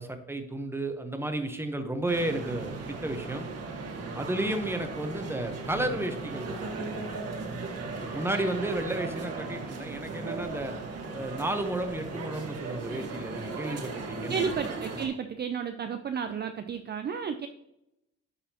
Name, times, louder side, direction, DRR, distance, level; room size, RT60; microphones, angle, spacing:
voice 1, 0.0-3.5 4.1-6.9 7.9-10.8 11.1-14.7, right 1 dB, 10° right, 7 dB, 0.9 m, -33 dB
sound 1, 2.1-15.1, right 3 dB, 55° right, 1.5 m, -37 dB
voice 2, 14.3-17.5, right 6 dB, 35° right, 8 dB, 0.4 m, -32 dB
10.5 x 4.1 x 2.9 m, 0.85 s
cardioid pair, 90°, 30 cm